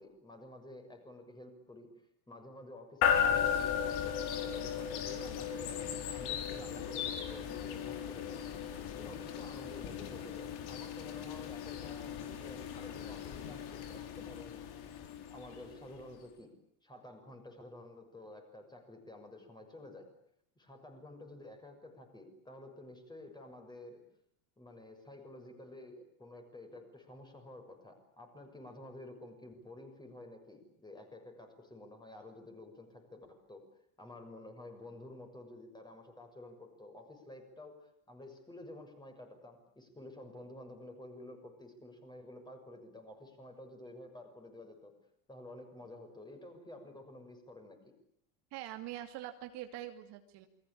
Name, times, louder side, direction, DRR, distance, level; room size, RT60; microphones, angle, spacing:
voice 1, 0.0-1.9 2.3-8.4 8.9-14.7 15.3-16.5 16.8-20.1 20.6-24.0 24.6-33.6 34.0-44.9 45.3-47.8, left 1 dB, 10° left, 5 dB, 6.5 m, -51 dB
sound 1, 3.0-16.0, left 8 dB, 50° left, 4.6 m, -36 dB
voice 2, 48.5-50.5, right 13 dB, 50° right, 6 dB, 2.6 m, -44 dB
29.0 x 23.0 x 8.8 m, 0.71 s
cardioid pair, 155°, 50 cm